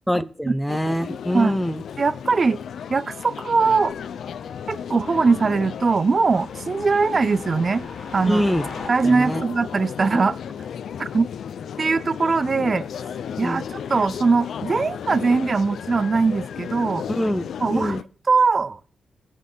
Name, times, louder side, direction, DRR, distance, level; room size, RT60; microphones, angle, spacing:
voice 1, 0.1-1.8 8.2-8.6 9.0-9.4 13.4-13.6 17.1-17.4 17.7-18.0, equal, ahead, 13 dB, 0.8 m, -24 dB
sound 1, 0.7-18.0, left 8 dB, 75° left, 0.6 m, -34 dB
voice 2, 2.0-2.6 2.9-3.9 4.7-7.9 8.1-8.4 8.9-10.4 11.0-11.3 11.8-12.9 13.4-17.0 17.6-18.0 18.3-18.8, right 4 dB, 35° right, 15 dB, 0.5 m, -21 dB
sound 2, 3.7-8.9, left 3 dB, 50° left, 3.4 m, -42 dB
19.5 x 6.5 x 5.5 m, 0.42 s
wide cardioid pair, 140°, 0 cm